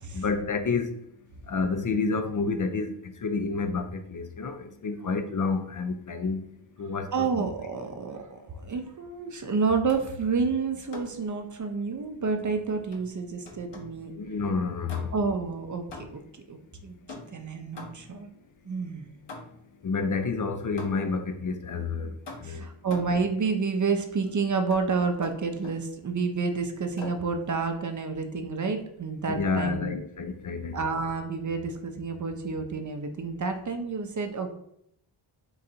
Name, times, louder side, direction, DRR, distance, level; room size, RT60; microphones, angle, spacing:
voice 1, 0.1-0.9 1.5-6.4 6.8-7.3 14.1-15.1 19.8-22.7 29.3-30.8, left 4 dB, 40° left, 0.5 m, -29 dB
voice 2, 7.1-14.1 15.1-16.2 16.5-16.9 17.3-18.3 18.6-19.1 22.4-30.0 30.7-34.5, right 4 dB, 35° right, 0.6 m, -29 dB
sound 1, 9.9-10.2 10.9-11.3 12.9-14.0 14.9-15.4 15.9-16.4 17.1-18.2 19.3-19.8 20.8-21.2 22.3-23.3 24.7-24.9 25.2-25.9 27.0-27.3, left 2 dB, 55° left, 1.0 m, -44 dB
3.9 x 2.5 x 4.2 m
cardioid pair, 65°, 50 cm